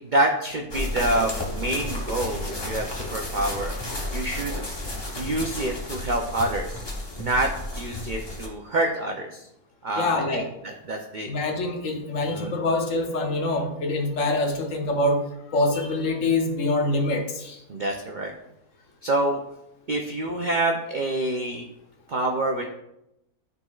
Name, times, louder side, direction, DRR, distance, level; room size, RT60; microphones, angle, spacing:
voice 1, 0.0-3.7 4.1-4.6 5.2-6.9 7.2-7.5 7.8-9.4 9.8-11.3 12.3-12.5 17.7-18.3 19.0-19.4 19.9-21.6 22.1-22.6, right 1 dB, 75° right, 1 dB, 0.4 m, -27 dB
sound 1, 0.7-8.5, left 1 dB, 20° left, 0.9 m, -32 dB
voice 2, 10.0-10.5 11.3-17.6, left 2 dB, 60° left, 3 dB, 1.1 m, -25 dB
12.0 x 4.1 x 2.4 m, 0.86 s
omnidirectional pair, 1.6 m